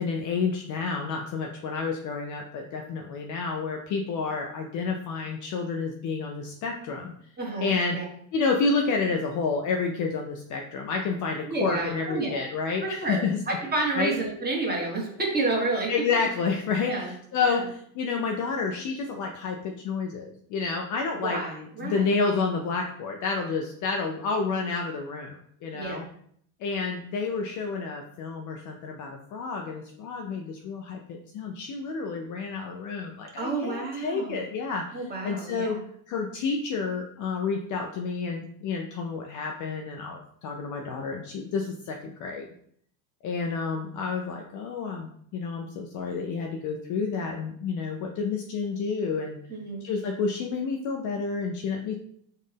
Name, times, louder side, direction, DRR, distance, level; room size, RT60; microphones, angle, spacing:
voice 1, 0.0-7.1 7.6-8.0 8.3-13.4 14.0-14.1 15.9-16.9 17.3-21.4 21.8-26.0 26.6-34.9 35.2-35.8 36.1-42.5 43.2-49.4 49.8-51.9, left 4 dB, 40° left, 2 dB, 0.5 m, -29 dB
voice 2, 7.4-8.0 11.5-12.5 12.8-15.9 16.9-17.1 17.4-17.6 21.2-22.1 25.7-26.0 33.4-34.4 34.9-35.8 49.5-49.9, right 2 dB, 20° right, -2 dB, 1.4 m, -30 dB
4.3 x 2.5 x 3.4 m, 0.65 s
hypercardioid pair, 85°, 50 cm